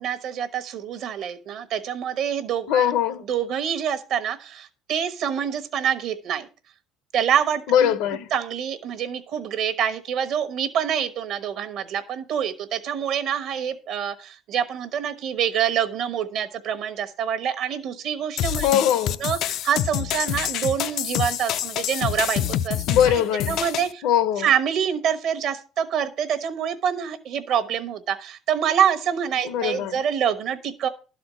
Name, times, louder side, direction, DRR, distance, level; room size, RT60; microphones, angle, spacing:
voice 1, 0.0-2.9 3.3-6.5 7.1-7.9 8.3-18.7 19.2-22.8 23.5-24.1 24.4-30.9, right 8 dB, 50° right, 1.0 m, -26 dB
voice 2, 2.7-3.2 7.7-8.3 18.6-19.2 22.9-23.6 24.0-24.5 29.4-30.0, left 10 dB, 70° left, 0.8 m, -21 dB
sound 1, 18.4-23.9, left 11 dB, 50° left, 0.4 m, -27 dB
12.0 x 4.3 x 6.2 m
cardioid pair, 170°, 0 cm